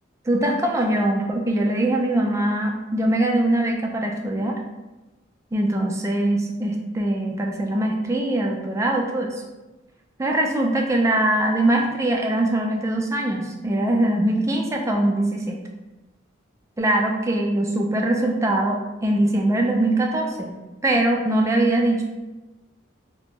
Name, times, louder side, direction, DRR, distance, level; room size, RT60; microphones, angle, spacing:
voice 1, 0.3-4.6 5.5-9.4 10.2-15.6 16.8-20.5 20.8-22.0, right 1 dB, 15° right, 1 dB, 0.3 m, -22 dB
2.6 x 2.2 x 2.9 m, 1.1 s
head